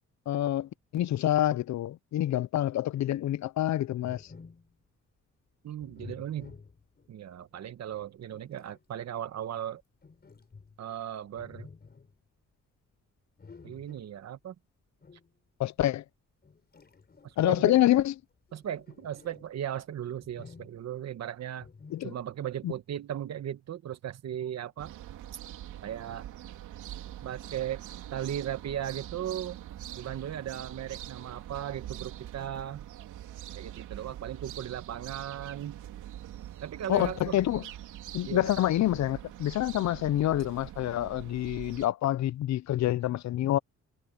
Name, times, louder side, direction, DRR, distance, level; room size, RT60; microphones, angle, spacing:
voice 1, 0.3-4.2 15.6-16.0 17.4-18.1 21.9-22.1 22.6-22.7 36.9-37.6 38.1-43.6, left 13 dB, 65° left, 0.7 m, -27 dB
sound 1, 4.0-4.8 5.8-7.1 7.9-8.8 10.0-10.9 11.3-12.2 13.4-14.2 15.0-15.3 16.4-17.6 18.4-19.6 20.2-21.0 21.6-22.4, left 4 dB, 30° left, 5.3 m, -51 dB
voice 2, 5.6-6.5 7.1-9.8 10.8-11.7 13.6-14.5 17.2-17.7 18.5-21.7 22.0-24.9 25.8-26.3 27.2-27.8 28.1-29.6 29.9-32.9 33.5-35.8 36.6-37.4 38.3-38.5, right 10 dB, 60° right, 1.5 m, -37 dB
sound 2, 24.8-41.9, right 12 dB, 80° right, 3.2 m, -44 dB
cardioid pair, 90°, 30 cm